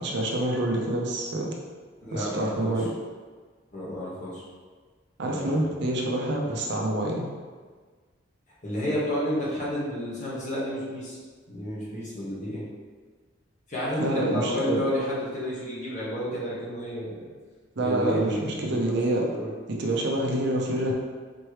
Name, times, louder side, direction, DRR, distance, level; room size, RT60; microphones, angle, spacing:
voice 1, 0.0-1.5 2.1-2.9 5.2-7.3 14.0-14.8 17.8-19.2 19.8-20.9, right 1 dB, 60° right, -1 dB, 0.6 m, -27 dB
voice 2, 2.0-2.8 3.7-4.4 5.3-5.7 8.6-11.2 11.5-12.7 13.7-17.3 17.8-19.0 19.3-19.5, equal, 40° left, -7 dB, 1.3 m, -31 dB
4.3 x 3.1 x 3.2 m, 1.5 s
head